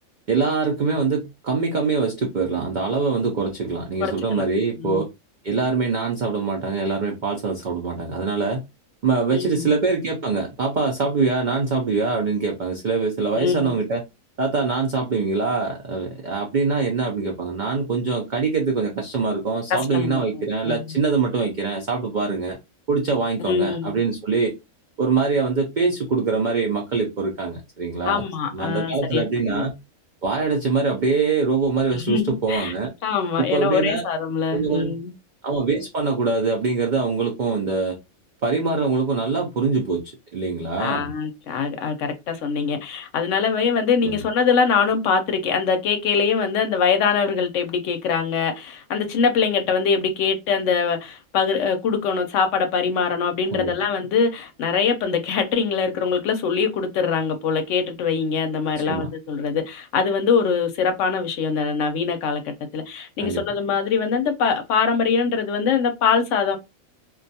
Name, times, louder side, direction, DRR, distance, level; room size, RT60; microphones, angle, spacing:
voice 1, 0.3-5.1 5.4-8.6 9.0-14.0 14.4-22.6 22.9-24.5 25.0-28.2 28.5-29.8 30.2-32.9 33.4-34.1 34.5-35.0 35.4-38.0 38.4-40.0 40.3-41.1 44.0-44.2 53.5-53.7 58.8-59.1 63.2-63.4, right 4 dB, 90° right, 0.4 m, -23 dB
voice 2, 4.0-4.4 4.8-5.0 9.3-9.7 13.4-13.8 19.7-20.2 20.6-20.8 23.4-24.0 28.0-29.7 31.9-32.7 33.0-35.1 40.8-66.6, left 6 dB, 70° left, 0.8 m, -23 dB
2.4 x 2.2 x 2.6 m
omnidirectional pair, 1.4 m